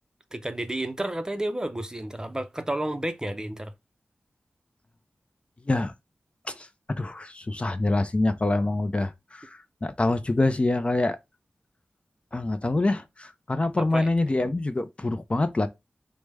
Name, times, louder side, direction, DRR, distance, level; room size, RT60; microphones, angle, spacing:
voice 1, 0.3-3.7 13.8-14.1, right 1 dB, 20° right, 0.5 m, -31 dB
voice 2, 6.5-11.2 12.3-15.7, left 2 dB, 35° left, 0.4 m, -26 dB
4.8 x 2.1 x 3.3 m
wide cardioid pair, 75°, 4 cm